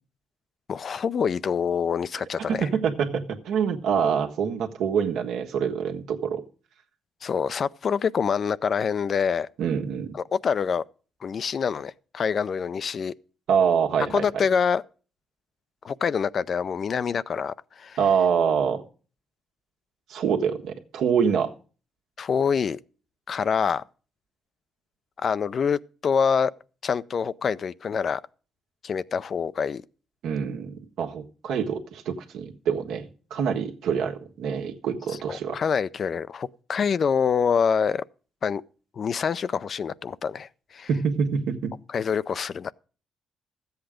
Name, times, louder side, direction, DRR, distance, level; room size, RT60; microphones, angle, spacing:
voice 1, 0.7-2.7 7.2-9.5 10.1-10.8 11.2-13.1 14.1-14.8 15.8-18.0 22.2-22.8 23.3-23.8 25.2-26.5 26.8-28.2 28.8-29.8 35.3-38.0 38.4-38.6 39.0-40.9 41.9-42.7, left 6 dB, 50° left, 0.4 m, -26 dB
voice 2, 2.5-6.4 9.6-10.1 13.5-14.2 18.0-18.8 20.1-21.5 30.2-35.6 40.9-41.7, right 7 dB, 80° right, 1.5 m, -25 dB
13.5 x 8.0 x 5.0 m
cardioid pair, 90°, 0 cm